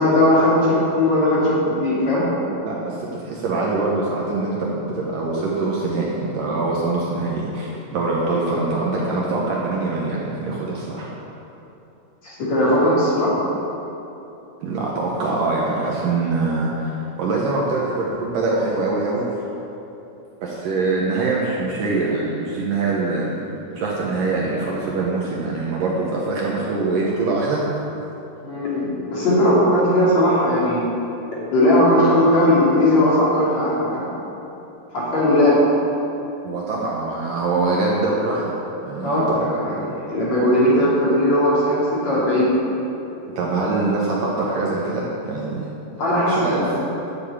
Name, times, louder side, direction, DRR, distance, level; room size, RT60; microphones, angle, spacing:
voice 1, 0.0-2.2 12.2-13.3 28.4-30.9 31.5-34.1 34.9-35.6 39.0-41.8 42.0-42.5 46.0-46.7, left 1 dB, 45° left, -8 dB, 4.0 m, -18 dB
voice 2, 2.6-11.1 14.6-19.3 20.4-23.4 23.7-27.6 36.4-38.5 38.8-39.9 43.4-45.7 46.0-46.6, right 3 dB, 65° right, -4 dB, 2.5 m, -24 dB
11.5 x 7.6 x 8.6 m, 3.0 s
omnidirectional pair, 4.9 m